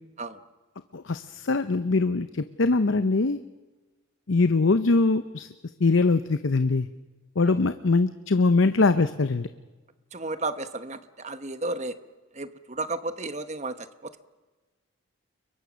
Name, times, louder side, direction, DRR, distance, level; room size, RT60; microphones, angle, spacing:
voice 1, 0.9-3.4 4.3-5.5 5.8-6.9 7.4-9.5, left 3 dB, 65° left, 11 dB, 0.7 m, -22 dB
voice 2, 10.1-12.0 12.3-14.2, right 2 dB, 35° right, 11 dB, 1.0 m, -33 dB
29.5 x 23.0 x 6.3 m, 1.3 s
head